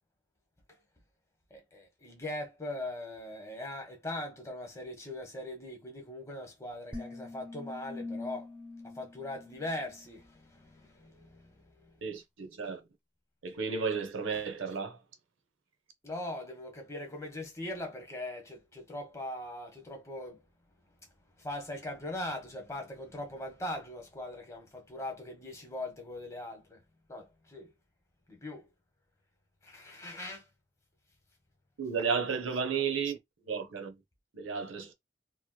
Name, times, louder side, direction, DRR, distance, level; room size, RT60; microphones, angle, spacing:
voice 1, 1.5-8.5 8.8-11.4 16.0-20.4 21.4-26.8 27.1-27.7 28.3-28.6 29.6-30.4, left 1 dB, 15° left, 1.0 m, -40 dB
sound 1, 6.9-10.3, left 3 dB, 5° right, 0.5 m, -44 dB
voice 2, 12.0-12.8 13.4-15.0 31.8-33.2 33.4-34.0 34.3-34.9, right 6 dB, 90° right, 0.7 m, -33 dB
2.9 x 2.9 x 2.2 m
head